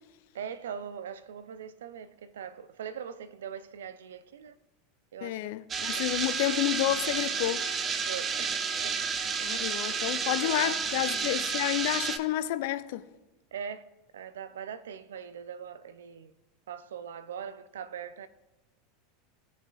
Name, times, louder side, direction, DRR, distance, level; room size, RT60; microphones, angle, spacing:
voice 1, 0.3-4.6 5.1-5.4 5.9-6.1 8.1-9.0 10.2-10.8 13.5-13.9 14.1-16.3 16.7-18.3, right 8 dB, 65° right, 0.4 m, -41 dB
voice 2, 5.2-7.6 9.4-13.0, left 15 dB, 55° left, 0.4 m, -30 dB
sound 1, 5.7-12.2, right 6 dB, 30° right, 0.7 m, -31 dB
16.5 x 5.7 x 2.4 m
figure-of-eight pair, 80°, 0 cm